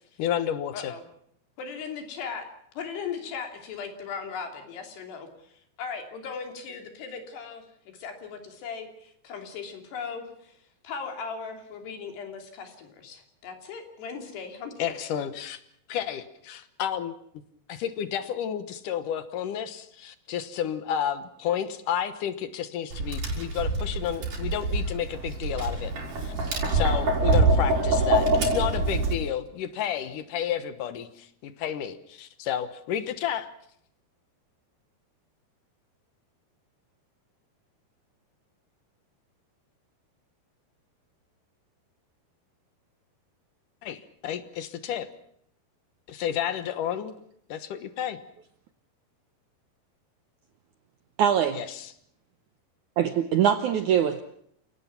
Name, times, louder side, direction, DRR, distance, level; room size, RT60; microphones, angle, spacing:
voice 1, 0.2-0.9 14.8-15.6 15.9-17.2 17.7-25.9 26.2-33.5 43.8-45.1 46.1-47.1 47.5-48.2 51.6-51.9, left 9 dB, 65° left, 12 dB, 2.5 m, -31 dB
voice 2, 1.6-2.5 2.8-5.5 5.8-7.6 7.9-10.6 10.8-15.0, left 6 dB, 85° left, 4 dB, 5.2 m, -38 dB
Tap, 22.9-29.1, right 2 dB, 50° right, 6.0 m, -25 dB
voice 3, 51.2-51.7 53.0-54.2, right 9 dB, 75° right, 9 dB, 1.8 m, -23 dB
29.0 x 18.0 x 6.0 m, 0.68 s
omnidirectional pair, 4.7 m